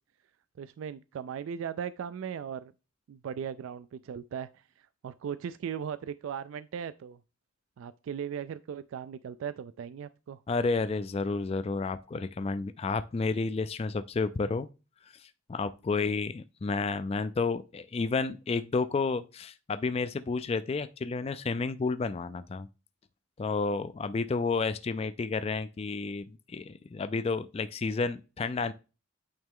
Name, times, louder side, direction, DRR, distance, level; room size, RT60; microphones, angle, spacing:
voice 1, 0.6-2.7 3.1-7.2 7.8-10.4, right 8 dB, 75° right, 0.3 m, -38 dB
voice 2, 10.5-14.7 15.0-22.7 23.4-28.7, left 4 dB, 30° left, 0.3 m, -31 dB
8.9 x 3.2 x 3.6 m
head